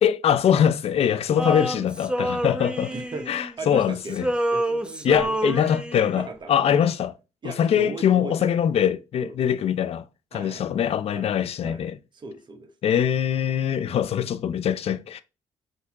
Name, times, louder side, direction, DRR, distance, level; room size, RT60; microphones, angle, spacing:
voice 1, 0.0-2.9 3.3-4.3 5.0-7.1 7.4-12.0 12.8-15.2, left 9 dB, 60° left, 0.5 m, -23 dB
Male singing, 1.4-3.8 4.1-6.2, right 1 dB, 10° right, 0.7 m, -28 dB
voice 2, 2.9-3.3 3.6-4.2 4.5-5.4 6.1-6.8 7.4-8.6 9.2-9.4 10.3-10.7 11.1-11.3 11.6-11.8 12.1-12.7 13.7-14.0, right 3 dB, 40° right, 1.1 m, -37 dB
6.6 x 2.8 x 2.3 m
supercardioid pair, 70°, 12 cm